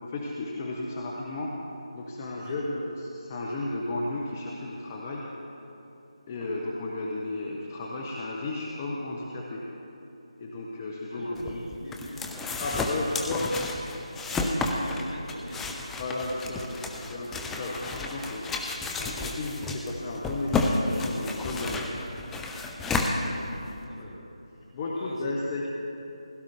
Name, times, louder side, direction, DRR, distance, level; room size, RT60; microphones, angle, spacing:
voice 1, 0.0-1.5 1.9-5.3 6.3-9.7 10.4-11.6 12.6-13.4 16.0-16.8 17.1-18.5 19.0-21.9 23.9-24.1 24.7-25.7, left 2 dB, 25° left, -2 dB, 0.9 m, -34 dB
voice 2, 11.1-12.4 12.8-13.4 14.3-17.4 22.8-24.2 24.9-25.3, equal, 65° left, -2 dB, 2.7 m, -41 dB
sound 1, 11.4-23.8, left 3 dB, 5° left, 0.4 m, -31 dB
16.0 x 12.0 x 3.5 m, 2.9 s
figure-of-eight pair, 160°, 4 cm